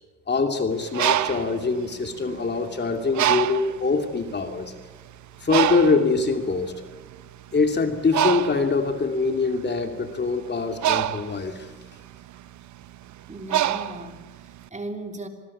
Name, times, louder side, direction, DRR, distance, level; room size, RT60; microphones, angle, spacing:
voice 1, 0.3-4.7 5.4-6.7 7.5-11.7, left 4 dB, 35° left, 6 dB, 2.7 m, -24 dB
Bird, 0.7-2.6 3.1-3.8 4.5-4.7 4.9-14.6, right 12 dB, 70° right, 1.0 m, -26 dB
voice 2, 13.3-15.3, right 2 dB, 25° right, 5 dB, 3.3 m, -37 dB
26.5 x 20.5 x 8.6 m, 1.3 s
cardioid pair, 90°, 30 cm